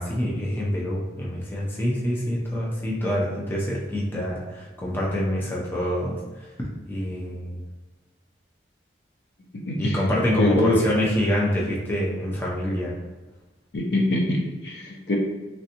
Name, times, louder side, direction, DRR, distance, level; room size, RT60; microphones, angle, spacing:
voice 1, 0.0-6.5 6.9-7.6 9.8-12.9, equal, 10° left, -5 dB, 0.5 m, -26 dB
voice 2, 9.7-10.0 10.4-10.8 13.7-15.2, left 1 dB, 65° left, 0 dB, 0.5 m, -23 dB
3.3 x 2.6 x 2.8 m, 1.2 s
head